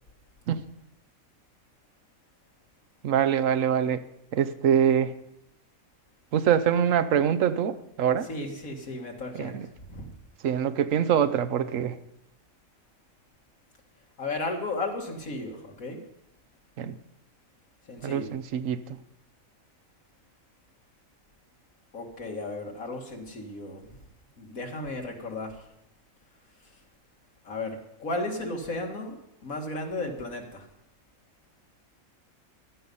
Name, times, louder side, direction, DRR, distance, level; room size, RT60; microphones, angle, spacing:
voice 1, 3.0-4.0 4.3-5.1 6.3-8.3 9.3-9.7 10.4-12.0 16.8-17.0 18.0-19.0, right 8 dB, 70° right, 12 dB, 1.1 m, -24 dB
voice 2, 8.2-9.6 9.8-10.1 14.2-16.0 17.9-18.3 21.9-23.9 24.4-25.6 27.4-29.2 29.4-30.7, left 2 dB, 75° left, 2 dB, 2.4 m, -34 dB
15.0 x 12.0 x 5.5 m, 0.82 s
omnidirectional pair, 1.4 m